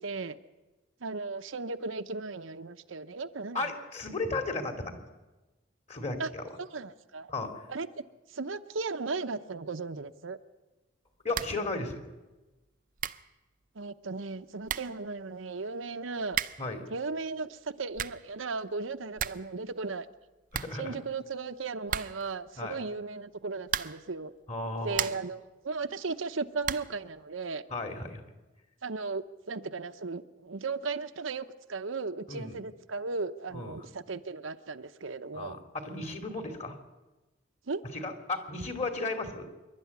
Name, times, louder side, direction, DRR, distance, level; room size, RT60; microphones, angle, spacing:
voice 1, 0.0-0.4 1.0-3.7 6.2-6.3 6.6-7.3 7.7-7.9 8.3-10.4 13.7-16.4 16.9-20.1 20.8-24.3 24.8-27.6 28.8-35.6 37.7-37.8, right 4 dB, 85° right, 9 dB, 0.9 m, -36 dB
voice 2, 3.5-5.0 5.9-6.4 7.3-7.7 11.2-12.0 16.6-16.8 20.5-21.0 22.6-22.8 24.5-25.1 27.7-28.2 32.3-32.6 33.5-33.8 35.3-36.8 37.9-39.5, left 2 dB, 35° left, 6 dB, 2.6 m, -35 dB
sound 1, 11.3-11.7 12.0-12.1 12.7-12.8 13.0-13.3 14.3-14.4 14.6-15.0 16.3-16.7 17.7-18.3 18.7-18.8 19.0-19.5 19.8-19.9 20.2-20.3 20.5-21.3 21.9-22.4 23.6-24.1 24.6-25.4 26.6-27.0, right 9 dB, 45° right, 0.6 m, -35 dB
25.5 x 12.0 x 9.6 m, 1.1 s
head